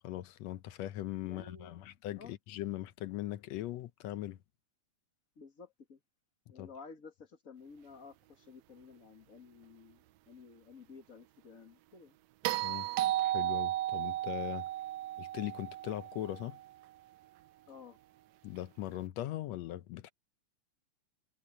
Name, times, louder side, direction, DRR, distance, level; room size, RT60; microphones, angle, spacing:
voice 1, 0.0-4.4 6.6-6.7 12.6-12.9 13.2-14.7 15.2-16.6 18.4-20.1, left 14 dB, 70° left, 1.7 m, -40 dB
voice 2, 1.2-2.4 5.4-6.0 6.5-12.2 17.7-18.0, left 5 dB, 35° left, 1.7 m, -53 dB
sound 1, 12.4-16.7 19.0-19.1, right 14 dB, 80° right, 1.6 m, -34 dB
omnidirectional pair, 3.5 m